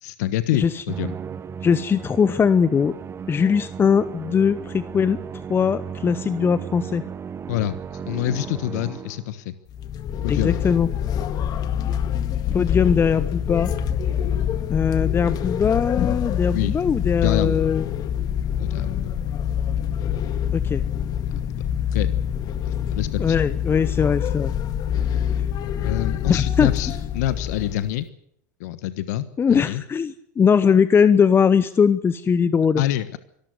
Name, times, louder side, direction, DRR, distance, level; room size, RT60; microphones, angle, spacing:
voice 1, 0.0-1.1 7.5-9.5 10.2-10.6 16.5-16.8 17.1-17.6 18.6-19.1 21.4-21.6 21.9-22.2 22.6-23.4 25.8-28.0 28.6-29.8 32.8-33.2, left 13 dB, 65° left, 14 dB, 1.3 m, -26 dB
Musical instrument, 0.9-9.4, right 7 dB, 25° right, 1.2 m, -35 dB
voice 2, 1.6-3.0 3.3-7.0 10.3-10.9 12.5-13.7 14.7-17.9 20.5-20.8 23.2-24.5 26.3-26.7 29.4-32.8, left 6 dB, 25° left, 15 dB, 0.9 m, -20 dB
sound 1, 9.7-27.9, left 9 dB, 45° left, 1.9 m, -25 dB
23.5 x 14.0 x 9.5 m, 0.68 s
hypercardioid pair, 90°, 10 cm